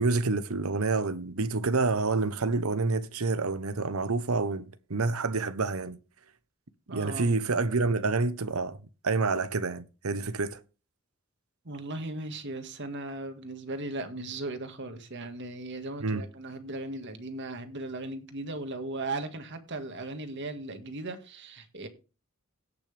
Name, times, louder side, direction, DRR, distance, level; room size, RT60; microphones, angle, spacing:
voice 1, 0.0-6.0 6.9-8.8 9.0-10.6 16.0-16.2, right 3 dB, 85° right, 1.0 m, -28 dB
voice 2, 6.9-7.3 11.7-21.9, right 2 dB, 55° right, 1.8 m, -37 dB
17.0 x 6.0 x 3.5 m
head